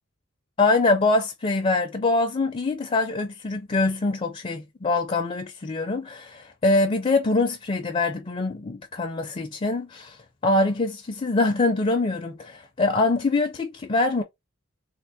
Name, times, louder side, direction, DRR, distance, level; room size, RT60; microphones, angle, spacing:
voice 1, 0.6-10.2 10.4-14.2, left 2 dB, 30° left, 0.4 m, -24 dB
3.5 x 2.4 x 2.7 m
head